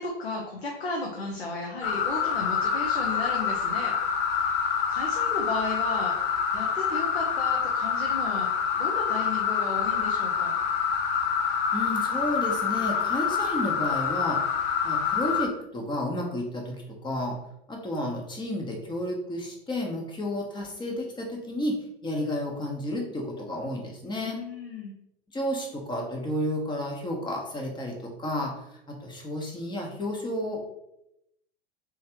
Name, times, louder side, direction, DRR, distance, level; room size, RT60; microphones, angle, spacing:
voice 1, 0.0-3.9 4.3-8.5 8.7-10.6 24.2-24.9, left 3 dB, 85° left, -1 dB, 0.8 m, -34 dB
sound 1, 1.8-15.5, left 6 dB, 40° left, 0.6 m, -27 dB
voice 2, 11.7-14.4 14.8-17.4 17.7-24.4 25.3-30.6, left 1 dB, 15° left, 1 dB, 0.9 m, -32 dB
3.6 x 3.1 x 3.0 m, 0.82 s
figure-of-eight pair, 90°, 30 cm